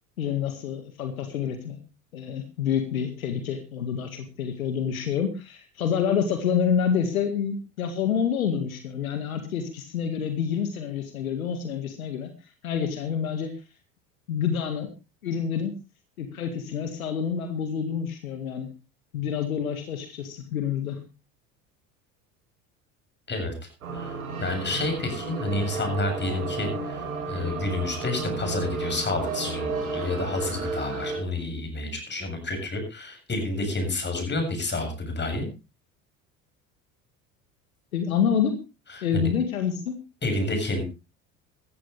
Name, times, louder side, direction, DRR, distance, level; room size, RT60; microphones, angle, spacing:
voice 1, 0.2-1.8 2.1-12.3 12.6-13.5 14.3-14.9 15.2-15.7 16.2-18.7 19.1-21.0 37.9-38.6 39.0-39.9, left 7 dB, 80° left, 7 dB, 2.1 m, -27 dB
sound 1, 23.8-31.2, right 4 dB, 85° right, 6.2 m, -32 dB
voice 2, 23.9-35.5 39.0-39.3 40.2-40.8, left 2 dB, 25° left, 5 dB, 7.6 m, -29 dB
16.0 x 14.5 x 3.4 m, 0.29 s
hypercardioid pair, 70°, 41 cm